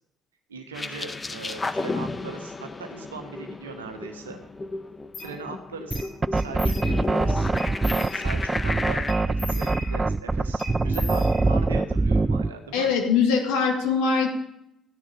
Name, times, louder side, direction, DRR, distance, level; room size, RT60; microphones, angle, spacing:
voice 1, 0.5-4.4 5.2-7.5 8.1-12.9, right 4 dB, 80° right, 5 dB, 1.4 m, -39 dB
sound 1, 0.7-9.1, left 3 dB, 25° left, 0.8 m, -33 dB
sound 2, 5.1-5.3 5.9-6.1 6.4-7.2 7.6-8.6 9.1-10.2 10.6-11.8, left 3 dB, 40° left, 3.6 m, -39 dB
sound 3, 5.9-12.5, right 3 dB, 20° right, 0.4 m, -23 dB
voice 2, 12.7-14.3, left 5 dB, 65° left, 2 dB, 2.0 m, -22 dB
14.0 x 10.0 x 5.2 m, 0.79 s
figure-of-eight pair, 45°, 0 cm